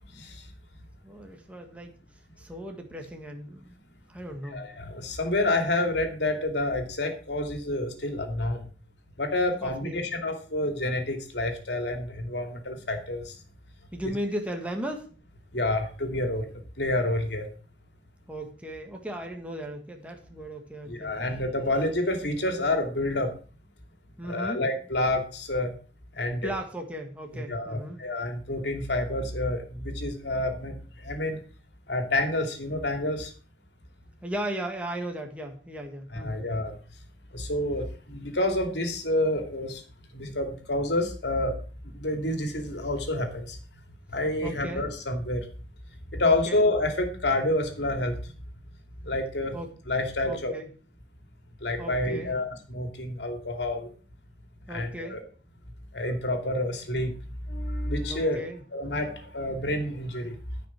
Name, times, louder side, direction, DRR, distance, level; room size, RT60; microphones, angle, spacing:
voice 1, 0.1-0.5 4.4-8.7 9.2-13.4 14.0-14.1 15.5-16.5 16.8-17.5 20.9-23.3 24.2-25.7 26.1-26.5 27.3-31.4 31.9-33.3 36.1-36.7 37.3-39.8 40.1-41.5 41.8-43.6 44.1-45.5 46.1-48.3 49.0-49.6 49.9-50.5 51.6-53.9 54.7-55.2 55.9-57.1 57.5-58.4 58.7-60.4, left 1 dB, 75° left, 5 dB, 2.7 m, -28 dB
voice 2, 1.0-1.9 2.4-3.8 4.1-4.6 9.6-10.1 13.9-15.1 18.3-21.1 24.2-24.6 26.4-28.0 34.2-36.4 44.4-44.8 46.2-46.6 49.5-49.7 50.2-50.7 51.8-52.4 54.7-55.2 58.1-58.6, right 1 dB, 5° right, 2 dB, 1.8 m, -36 dB
14.0 x 5.8 x 6.0 m, 0.39 s
head